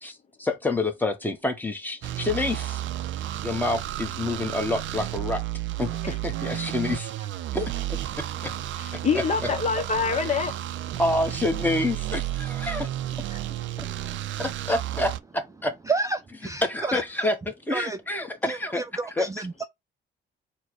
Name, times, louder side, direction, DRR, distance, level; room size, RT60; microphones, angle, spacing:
voice 1, 0.0-2.8 3.4-5.4 5.8-7.1 7.5-8.5 8.9-9.0 10.1-10.4 11.0-12.9 14.4-15.7 16.6-18.8 19.2-19.3, left 2 dB, 10° left, 1.2 m, -28 dB
sound 1, 2.0-15.2, right 13 dB, 75° right, 0.5 m, -32 dB
voice 2, 8.8-10.6 13.3-13.4, left 5 dB, 35° left, 0.8 m, -25 dB
voice 3, 15.9-17.0 17.7-18.0 18.4-19.6, right 3 dB, 15° right, 0.3 m, -30 dB
4.3 x 2.2 x 4.5 m
cardioid pair, 90°, 20 cm